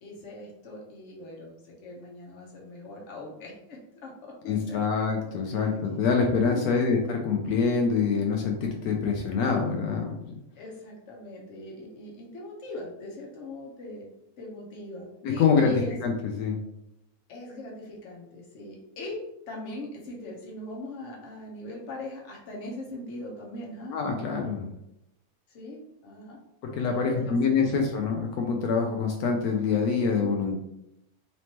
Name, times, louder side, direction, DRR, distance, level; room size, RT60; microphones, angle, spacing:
voice 1, 0.0-4.8 5.5-5.6 6.5-6.9 10.5-14.1 14.4-16.0 17.3-23.9 25.5-26.4 26.7-27.7, left 1 dB, 55° left, -2 dB, 1.2 m, -41 dB
voice 2, 4.4-10.3 15.2-15.7 16.0-16.6 23.9-24.7 26.6-30.6, left 5 dB, 85° left, 2 dB, 1.1 m, -25 dB
4.2 x 3.2 x 2.9 m, 0.82 s
omnidirectional pair, 1.6 m